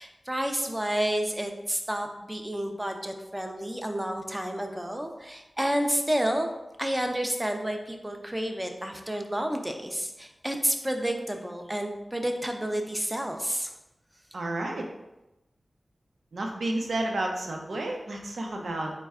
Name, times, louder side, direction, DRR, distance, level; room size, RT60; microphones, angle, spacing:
voice 1, 0.0-6.5 6.8-13.7, right 1 dB, 10° right, 4 dB, 0.4 m, -30 dB
voice 2, 14.3-14.9 16.3-18.9, right 1 dB, 75° right, 1 dB, 0.6 m, -31 dB
4.2 x 2.2 x 3.5 m, 0.95 s
wide cardioid pair, 70°, 0 cm